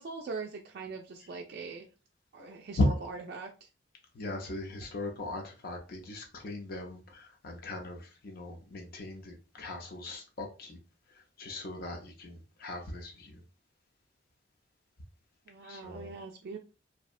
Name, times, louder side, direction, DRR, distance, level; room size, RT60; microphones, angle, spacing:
voice 1, 0.0-1.8 2.3-3.7 15.5-16.6, right 4 dB, 55° right, 0.3 m, -41 dB
voice 2, 4.1-10.8 11.1-13.4 15.6-16.1, left 2 dB, 50° left, 0.5 m, -37 dB
2.6 x 2.1 x 2.4 m
head